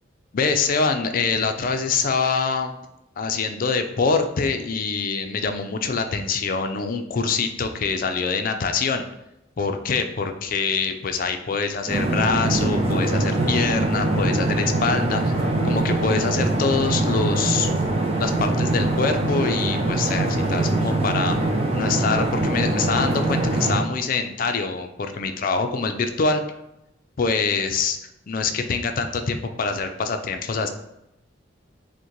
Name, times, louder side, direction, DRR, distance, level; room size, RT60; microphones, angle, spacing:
voice 1, 0.3-2.7 3.2-9.0 9.6-17.7 18.2-21.4 21.7-26.4 27.2-28.0 28.3-30.7, left 4 dB, 45° left, 7 dB, 0.4 m, -25 dB
sound 1, 11.9-23.8, right 2 dB, 30° right, 0.5 m, -23 dB
6.2 x 2.1 x 3.0 m, 0.85 s
head